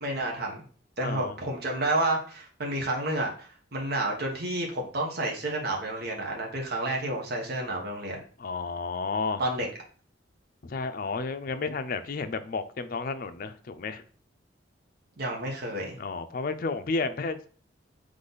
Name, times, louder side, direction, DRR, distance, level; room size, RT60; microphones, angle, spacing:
voice 1, 0.0-0.6 1.0-8.2 9.4-9.7 15.2-16.0, right 1 dB, 60° right, -1 dB, 1.0 m, -30 dB
voice 2, 1.0-1.4 8.4-9.4 10.6-14.0 16.0-17.5, left 4 dB, 50° left, 9 dB, 0.5 m, -32 dB
3.9 x 3.2 x 3.9 m, 0.43 s
head